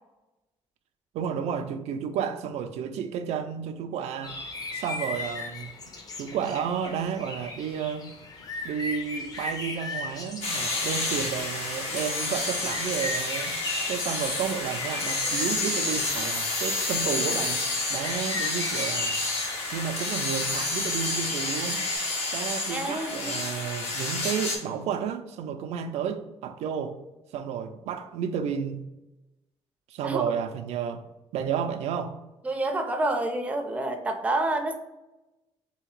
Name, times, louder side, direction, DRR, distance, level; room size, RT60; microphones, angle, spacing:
voice 1, 1.1-4.4 4.7-8.1 8.6-13.6 13.9-19.2 19.7-21.8 22.3-27.0 27.3-28.9 29.9-32.2, right 7 dB, 85° right, 8 dB, 0.4 m, -32 dB
sound 1, 4.2-22.0, left 2 dB, 35° left, 0.6 m, -38 dB
sound 2, 10.4-24.6, left 2 dB, 85° left, 1.3 m, -29 dB
voice 2, 22.7-23.4 30.0-30.2 32.4-34.8, right 2 dB, 15° right, 4 dB, 0.4 m, -28 dB
3.5 x 2.8 x 4.6 m, 1.0 s
cardioid pair, 170°, 11 cm